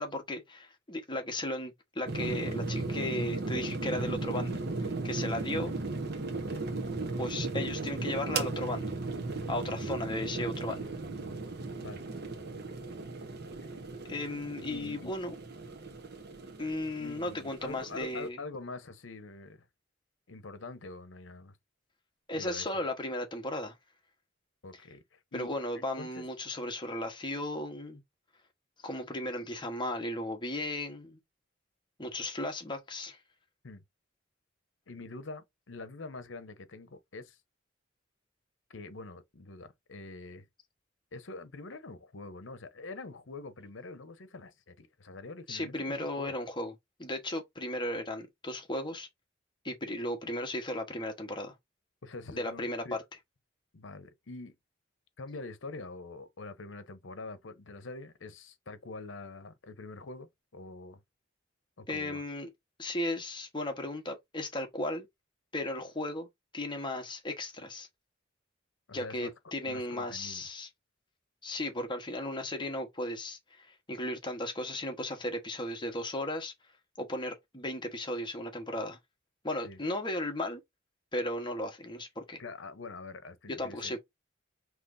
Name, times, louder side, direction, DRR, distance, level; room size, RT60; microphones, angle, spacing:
voice 1, 0.0-5.7 7.2-9.0 9.5-10.8 14.1-15.3 16.6-18.4 22.3-23.8 25.3-28.0 28.8-31.2 32.0-33.2 45.5-46.7 47.0-49.1 49.6-51.5 52.4-53.0 61.9-62.5 62.8-65.1 65.5-66.3 66.5-67.9 68.9-70.7 71.4-76.5 77.0-79.0 79.4-80.6 81.1-82.4 83.5-84.0, left 1 dB, 25° left, 1.2 m, -35 dB
sound 1, 2.1-18.3, right 3 dB, 55° right, 1.0 m, -36 dB
voice 2, 14.6-15.2 17.0-19.7 20.3-21.6 22.3-22.7 24.6-26.2 33.6-33.8 34.9-37.4 38.7-40.5 41.1-46.4 52.0-53.0 53.7-54.5 55.2-61.0 61.8-62.2 68.9-69.3 69.6-70.4 79.6-79.8 82.4-84.0, left 3 dB, 70° left, 0.9 m, -45 dB
5.7 x 3.1 x 2.6 m
head